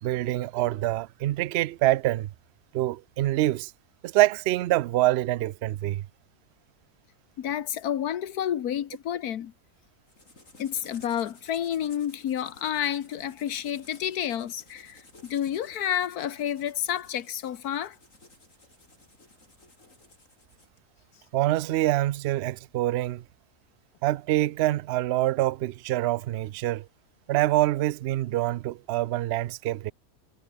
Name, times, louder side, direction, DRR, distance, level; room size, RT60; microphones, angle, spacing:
voice 1, 0.0-2.3 2.7-3.7 4.0-6.1 21.3-23.2 24.0-26.9 27.3-29.9, right 16 dB, 70° right, 0.6 m, -25 dB
voice 2, 7.4-9.5 10.6-18.0, left 10 dB, 85° left, 1.5 m, -30 dB
sound 1, 10.1-20.8, left 2 dB, 60° left, 5.6 m, -55 dB
omnidirectional pair, 1.6 m